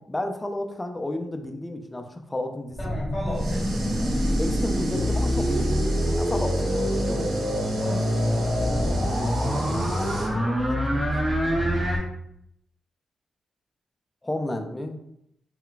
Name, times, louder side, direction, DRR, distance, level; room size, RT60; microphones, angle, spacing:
voice 1, 0.1-2.8 4.3-5.8 6.2-6.7 7.1-7.3 9.0-10.6 10.9-11.1 14.2-15.0, left 1 dB, 15° left, 5 dB, 0.4 m, -32 dB
sound 1, 2.7-12.0, equal, 15° right, 0.7 m, -25 dB
voice 2, 2.8-4.2 6.5-6.8 7.6-8.6 11.4-11.9, equal, 35° left, -7 dB, 0.9 m, -37 dB
sound 2, 3.3-10.3, right 2 dB, 75° right, 0.6 m, -36 dB
2.2 x 2.1 x 3.8 m, 0.77 s
cardioid pair, 105°, 0 cm